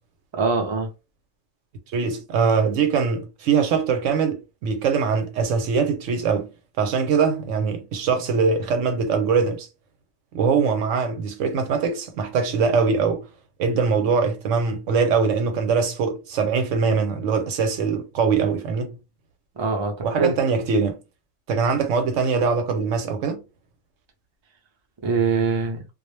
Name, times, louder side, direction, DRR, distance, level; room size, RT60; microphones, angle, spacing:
voice 1, 0.3-0.9 19.6-20.3 25.0-25.8, right 4 dB, 35° right, 0.4 m, -23 dB
voice 2, 1.9-6.5 6.8-9.7 10.3-13.3 13.6-19.0 20.0-21.0 21.5-23.4, right 5 dB, 75° right, 0.9 m, -22 dB
2.3 x 2.0 x 3.0 m
omnidirectional pair, 1.3 m